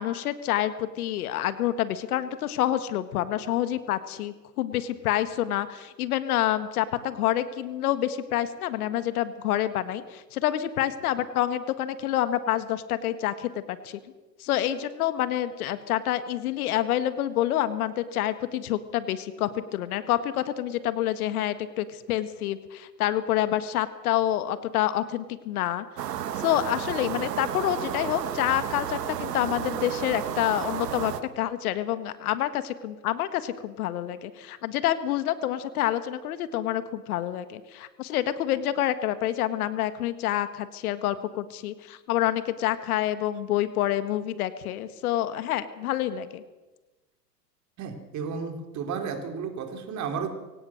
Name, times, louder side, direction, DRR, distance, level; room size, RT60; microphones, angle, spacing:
voice 1, 0.0-14.0 14.4-25.8 26.4-46.4, left 12 dB, 60° left, 12 dB, 1.7 m, -28 dB
sound 1, 26.0-31.2, right 10 dB, 70° right, 1.9 m, -32 dB
voice 2, 47.8-50.3, right 6 dB, 35° right, 5 dB, 4.0 m, -33 dB
23.5 x 17.5 x 6.6 m, 1.1 s
hypercardioid pair, 100°, 50 cm